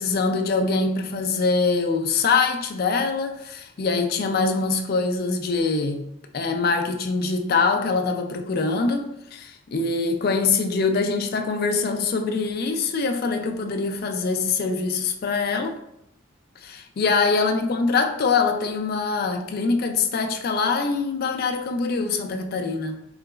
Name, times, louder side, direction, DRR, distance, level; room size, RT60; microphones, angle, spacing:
voice 1, 0.0-6.0 6.3-15.8 16.6-23.0, left 4 dB, 50° left, 5 dB, 0.4 m, -24 dB
3.9 x 3.8 x 2.3 m, 0.78 s
head